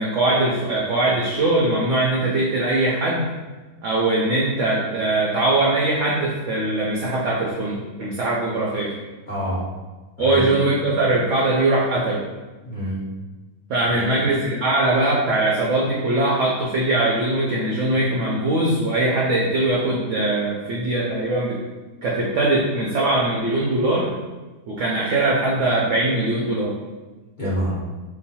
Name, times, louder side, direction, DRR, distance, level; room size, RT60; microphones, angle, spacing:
voice 1, 0.0-3.3 3.8-8.9 10.2-12.3 13.7-21.6 22.0-24.1 24.7-26.7, right 2 dB, 70° right, -4 dB, 0.7 m, -21 dB
voice 2, 9.3-9.6 10.2-10.5 12.6-13.0 13.9-14.3 27.4-27.7, equal, 30° left, -9 dB, 1.1 m, -27 dB
3.0 x 2.2 x 4.1 m, 1.2 s
omnidirectional pair, 1.8 m